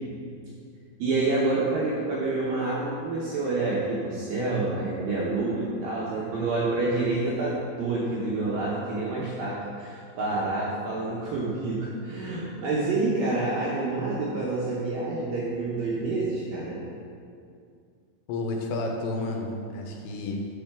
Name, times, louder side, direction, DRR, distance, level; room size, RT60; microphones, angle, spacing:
voice 1, 1.0-16.8, right 3 dB, 75° right, -6 dB, 2.1 m, -28 dB
voice 2, 18.3-20.5, left 2 dB, 85° left, 2 dB, 2.9 m, -31 dB
8.4 x 6.6 x 3.5 m, 2.4 s
omnidirectional pair, 5.1 m